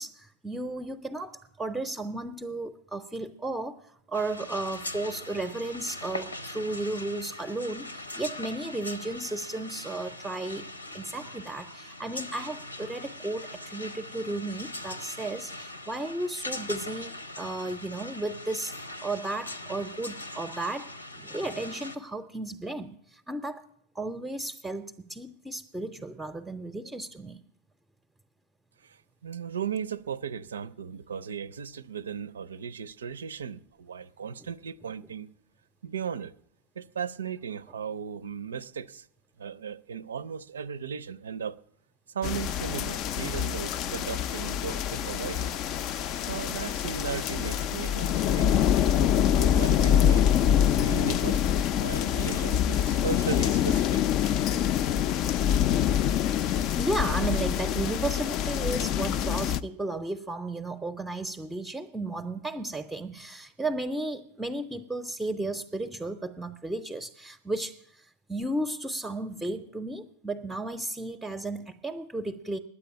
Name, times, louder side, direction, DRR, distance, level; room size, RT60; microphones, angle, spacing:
voice 1, 0.0-20.9 21.2-23.6 23.9-27.4 56.8-72.6, right 2 dB, 5° right, 0.6 m, -34 dB
sound 1, 4.1-22.0, left 1 dB, 80° left, 0.9 m, -41 dB
voice 2, 29.2-35.3 35.8-36.3 36.8-39.1 39.4-41.6 42.1-45.6 46.3-48.5 49.1-50.3 50.8-54.0, right 7 dB, 70° right, 0.5 m, -36 dB
sound 2, 42.2-59.6, left 9 dB, 40° left, 0.4 m, -25 dB
9.9 x 8.3 x 9.6 m
figure-of-eight pair, 90°, 0 cm